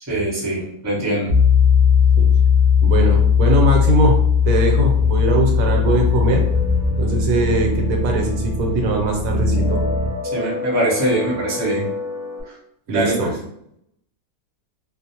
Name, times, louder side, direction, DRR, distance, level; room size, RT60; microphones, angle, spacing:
voice 1, 0.1-1.3 10.3-11.9 12.9-13.3, right 1 dB, 20° right, -5 dB, 0.5 m, -22 dB
Piano, 1.3-6.9, left 7 dB, 80° left, 0.3 m, -16 dB
voice 2, 2.8-4.2 4.4-6.5 7.0-9.8 12.9-13.3, right 2 dB, 75° right, 1 dB, 1.0 m, -20 dB
sound 1, 4.9-10.1, equal, 15° left, 0.7 m, -24 dB
sound 2, 5.6-12.4, left 3 dB, 60° left, 0.9 m, -32 dB
2.5 x 2.0 x 2.7 m, 0.74 s
omnidirectional pair, 1.5 m